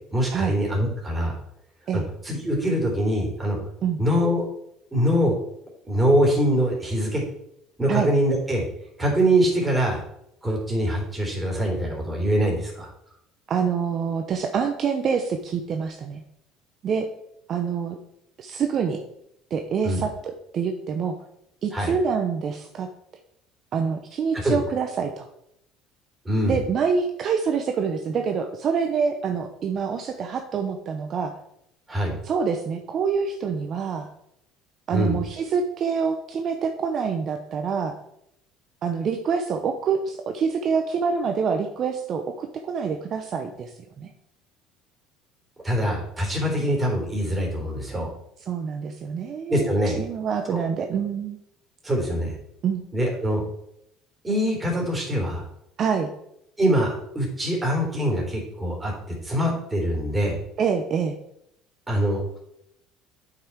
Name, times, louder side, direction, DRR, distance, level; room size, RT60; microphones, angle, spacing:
voice 1, 0.1-1.4 1.9-3.6 4.0-4.4 4.9-5.3 5.8-7.2 7.8-8.6 9.0-10.0 10.4-12.9 19.8-20.0 21.7-21.9 24.3-24.6 26.2-26.6 31.9-32.1 34.9-35.2 45.6-48.1 49.5-50.0 50.5-50.6 51.8-52.3 52.9-53.4 54.2-55.5 56.6-58.9 59.2-60.4 61.9-62.4, equal, 15° right, -1 dB, 3.6 m, -23 dB
voice 2, 13.5-16.2 16.8-17.1 17.5-18.0 18.4-19.0 19.5-21.2 21.6-22.9 23.7-25.3 26.5-31.3 32.2-34.1 34.9-38.0 38.8-44.1 48.5-51.4 52.6-52.8 55.8-56.1 60.6-61.2, right 6 dB, 45° right, 5 dB, 0.8 m, -26 dB
8.5 x 5.8 x 4.7 m, 0.77 s
supercardioid pair, 105°, 0 cm